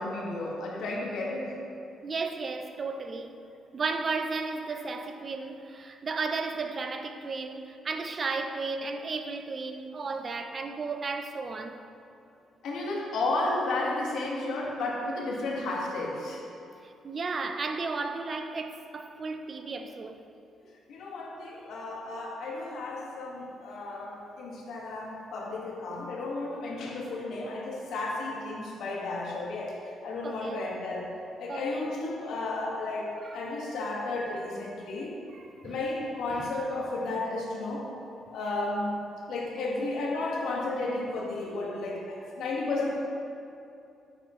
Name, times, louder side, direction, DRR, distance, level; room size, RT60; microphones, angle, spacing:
voice 1, 0.0-1.5 12.6-16.4 20.9-31.1 31.4-35.2 35.6-37.9 38.3-39.0 39.3-42.9, left 2 dB, 80° left, 1.9 m, -33 dB
voice 2, 2.0-3.4 3.7-11.8 16.8-20.2 30.2-30.6 31.5-31.9 33.2-33.4 35.3-35.8 36.3-36.5, right 4 dB, 40° right, 0.7 m, -34 dB
9.4 x 8.8 x 3.2 m
cardioid pair, 90°, 0 cm